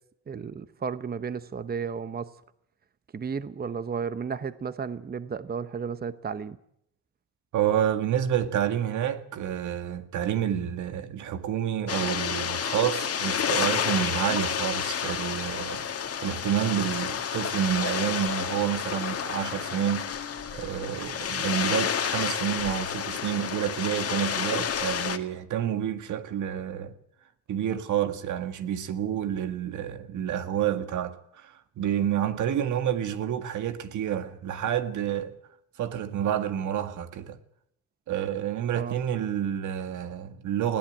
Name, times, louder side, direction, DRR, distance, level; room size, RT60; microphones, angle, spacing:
voice 1, 0.3-2.3 3.1-6.6 38.7-39.0, right 6 dB, 30° right, 0.9 m, -33 dB
voice 2, 7.5-15.9 16.2-20.1 20.5-26.9 27.5-35.3 35.8-37.4 38.1-40.8, right 10 dB, 75° right, 1.8 m, -29 dB
sound 1, 11.9-25.2, left 7 dB, 50° left, 1.9 m, -30 dB
20.0 x 16.5 x 9.1 m
cardioid pair, 90°, 30 cm